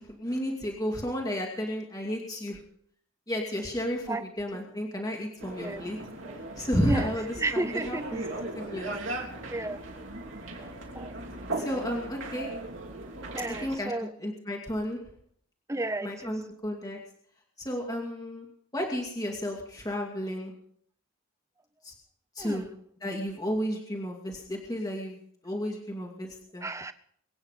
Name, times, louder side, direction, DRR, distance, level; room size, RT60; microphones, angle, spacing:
voice 1, 0.0-2.6 3.3-6.0 6.6-8.2 8.6-8.9 11.6-12.5 13.6-15.0 16.0-17.0 17.6-20.5 21.8-21.9 22.3-22.7 23.0-25.2 25.4-26.7, equal, 15° left, 0 dB, 2.5 m, -32 dB
sound 1, 5.4-13.8, right 2 dB, 60° right, 3.3 m, -38 dB
voice 2, 7.4-8.0 9.5-9.8 10.6-10.7 10.9-11.1 13.3-14.1 15.7-16.3 22.4-22.7 26.6-26.9, right 2 dB, 15° right, 11 dB, 0.8 m, -32 dB
23.5 x 9.6 x 5.1 m, 0.64 s
head